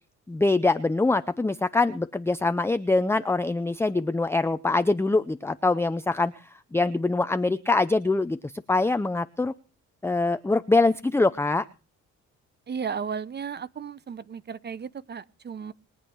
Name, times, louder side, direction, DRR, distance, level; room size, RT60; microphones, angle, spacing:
voice 1, 0.3-6.3 6.7-9.5 10.0-11.6, left 3 dB, 10° left, 11 dB, 0.6 m, -24 dB
voice 2, 12.7-15.7, right 6 dB, 35° right, 18 dB, 0.8 m, -34 dB
22.0 x 8.5 x 4.6 m, 0.34 s
cardioid pair, 90°, 30 cm